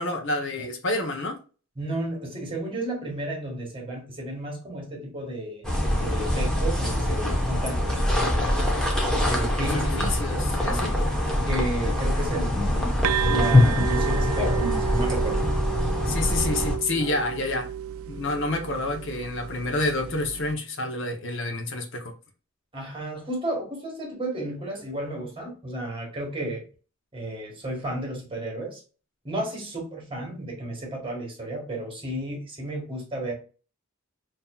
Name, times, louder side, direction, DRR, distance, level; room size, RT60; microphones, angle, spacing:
voice 1, 0.0-1.4 9.7-10.9 16.0-17.7 18.1-22.1, left 2 dB, 60° left, 0.8 m, -28 dB
voice 2, 1.8-8.6 9.2-10.8 11.5-15.4 17.0-17.1 22.7-26.6 27.1-28.8 29.2-33.3, right 1 dB, 25° right, 1.5 m, -33 dB
sound 1, 5.6-16.8, left 1 dB, 5° left, 0.9 m, -24 dB
sound 2, 13.0-20.5, right 10 dB, 75° right, 0.3 m, -31 dB
5.5 x 2.8 x 2.3 m
head